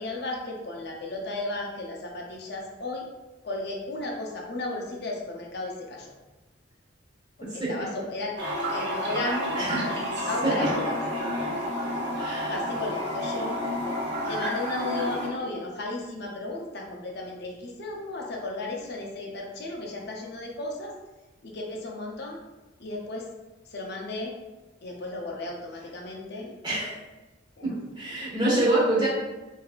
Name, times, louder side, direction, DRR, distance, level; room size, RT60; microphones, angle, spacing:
voice 1, 0.0-3.1 3.4-6.1 7.4-8.3 8.7-10.9 12.5-13.6 14.3-20.9 21.4-22.4 22.8-23.3 23.7-24.4 24.8-26.5 27.6-27.8, left 2 dB, 60° left, 0 dB, 0.7 m, -34 dB
Toilet flush, 8.4-15.3, equal, 60° right, 1.0 m, -30 dB
voice 2, 12.1-12.5 14.2-14.4 26.6-26.9 28.0-29.1, right 1 dB, 25° right, -7 dB, 1.1 m, -25 dB
4.8 x 2.8 x 2.4 m, 1.1 s
head